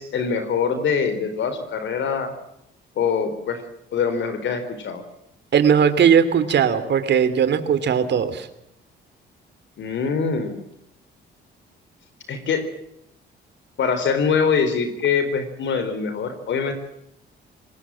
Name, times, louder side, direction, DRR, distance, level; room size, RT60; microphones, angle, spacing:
voice 1, 0.0-2.3 3.0-3.6 3.9-5.0 9.8-10.6 12.3-12.7 13.8-16.7, left 6 dB, 70° left, 9 dB, 4.2 m, -23 dB
voice 2, 5.5-8.5, right 7 dB, 60° right, 12 dB, 3.1 m, -18 dB
25.0 x 20.0 x 7.6 m, 0.79 s
cardioid pair, 90°, 20 cm